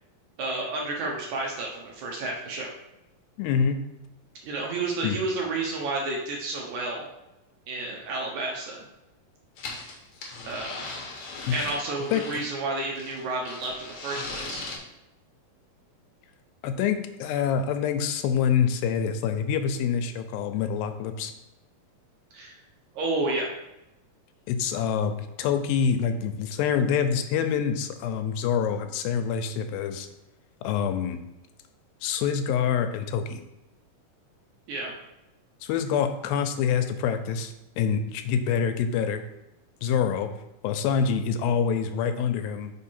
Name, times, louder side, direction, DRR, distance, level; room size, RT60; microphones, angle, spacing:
voice 1, 0.4-2.7 4.4-7.1 7.7-8.9 10.4-10.9 11.5-14.6 22.3-22.5 23.0-23.5 34.7-34.9, right 2 dB, 70° right, -1 dB, 1.9 m, -31 dB
voice 2, 3.4-3.8 5.0-5.2 12.1-12.2 16.6-21.3 24.5-30.1 30.6-31.2 32.0-33.4 35.6-39.2 39.8-40.3 40.6-42.7, left 7 dB, 90° left, 8 dB, 2.4 m, -26 dB
sound 1, 9.6-12.6 13.0-14.8, left 3 dB, 70° left, 1.4 m, -38 dB
5.4 x 4.6 x 4.3 m, 0.93 s
omnidirectional pair, 4.0 m